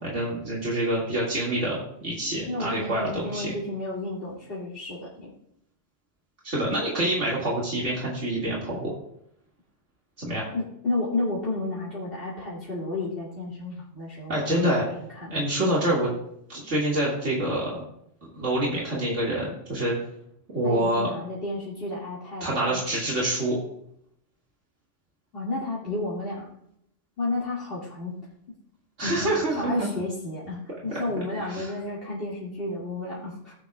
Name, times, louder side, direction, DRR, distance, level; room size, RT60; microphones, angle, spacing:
voice 1, 0.0-3.5 6.4-8.9 10.2-10.5 14.3-14.8 15.3-16.1 16.5-17.8 18.3-19.9 20.5-21.1 22.4-23.6 29.0-29.9 31.4-31.7, right 1 dB, 80° right, -5 dB, 2.6 m, -26 dB
voice 2, 2.5-5.3 10.5-14.8 15.2-15.4 20.6-22.8 25.3-26.5 27.2-28.1 29.0-33.5, left 2 dB, 50° left, -8 dB, 2.6 m, -32 dB
16.5 x 9.4 x 2.4 m, 0.73 s
omnidirectional pair, 1.2 m